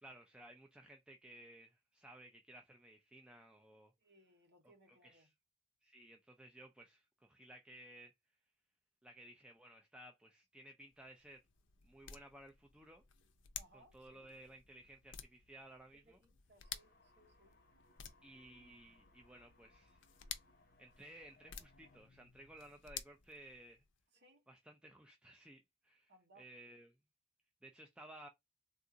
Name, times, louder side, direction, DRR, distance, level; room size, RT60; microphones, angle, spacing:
voice 1, 0.0-3.9 4.9-5.3 5.8-8.1 9.0-11.4 11.8-13.0 13.7-16.2 18.2-20.0 20.8-23.8 24.5-26.1 26.4-26.9 27.6-28.3, right 1 dB, 5° right, 0.3 m, -57 dB
voice 2, 4.0-5.3 13.5-14.4 15.9-17.6 24.1-24.5 26.1-26.5, right 1 dB, 55° right, 1.1 m, -67 dB
sound 1, 10.8-24.0, left 9 dB, 65° left, 0.5 m, -54 dB
sound 2, 16.6-22.0, left 2 dB, 50° left, 1.0 m, -70 dB
3.6 x 2.4 x 2.6 m
head